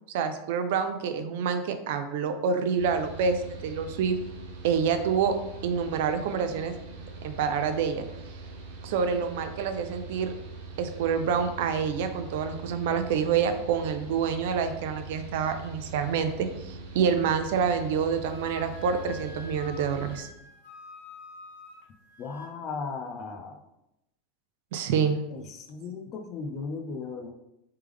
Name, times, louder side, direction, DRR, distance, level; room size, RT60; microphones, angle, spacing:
voice 1, 0.1-4.2 4.6-5.4 5.6-6.8 7.2-8.1 8.8-10.3 10.8-20.3 24.7-25.2, right 6 dB, 60° right, 8 dB, 0.4 m, -27 dB
Mechanical fan, 2.8-20.2, right 4 dB, 85° right, 0.8 m, -42 dB
Wind instrument woodwind instrument, 18.2-22.5, left 2 dB, 80° left, 0.9 m, -47 dB
voice 2, 22.2-23.6 25.3-27.3, left 4 dB, 30° left, 5 dB, 0.4 m, -36 dB
3.5 x 3.3 x 3.3 m, 0.86 s
supercardioid pair, 175°, 0 cm